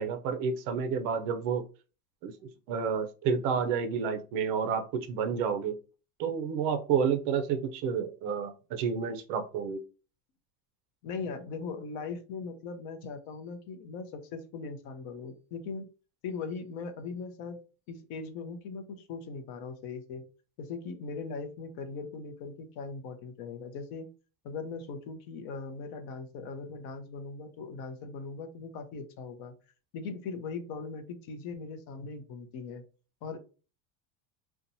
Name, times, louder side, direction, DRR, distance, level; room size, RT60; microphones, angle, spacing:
voice 1, 0.0-1.6 2.2-2.3 2.7-5.8 6.2-9.8, right 6 dB, 50° right, 8 dB, 0.5 m, -30 dB
voice 2, 11.0-15.9 16.2-17.6 17.9-20.2 20.6-24.1 24.4-29.5 29.9-32.8 33.2-33.4, left 4 dB, 55° left, 8 dB, 0.6 m, -39 dB
2.8 x 2.2 x 2.6 m, 0.35 s
cardioid pair, 160°, 43 cm